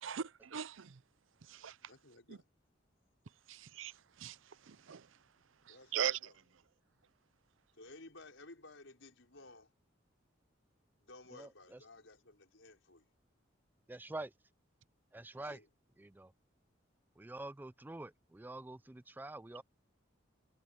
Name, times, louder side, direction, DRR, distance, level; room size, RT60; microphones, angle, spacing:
voice 1, 0.0-1.0 1.5-1.8 2.3-2.4 3.5-3.9 4.2-4.4 4.7-5.1 5.7-6.2, right 8 dB, 80° right, 0.6 m, -39 dB
voice 2, 1.9-2.4 5.7-6.3 7.8-9.7 11.0-13.1 15.4-15.7, left 2 dB, 75° left, 4.9 m, -56 dB
voice 3, 11.3-11.8 13.9-14.3 15.1-15.6 16.0-16.3 17.2-19.6, right 2 dB, 10° right, 0.3 m, -46 dB
head